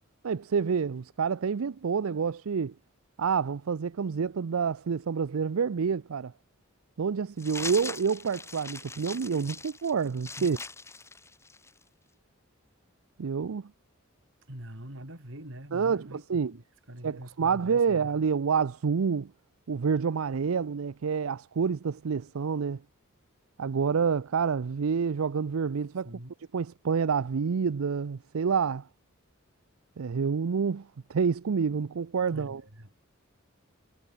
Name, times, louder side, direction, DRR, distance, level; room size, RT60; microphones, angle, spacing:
voice 1, 0.2-2.7 3.2-6.3 7.0-10.6 13.2-13.7 15.7-16.5 17.0-19.3 19.7-22.8 23.6-26.1 26.5-28.8 30.0-32.6, right 6 dB, 85° right, 0.5 m, -28 dB
sound 1, 7.4-11.8, left 3 dB, 15° left, 1.8 m, -41 dB
voice 2, 14.5-18.1 26.0-26.3 32.3-32.9, right 1 dB, 65° right, 5.3 m, -44 dB
head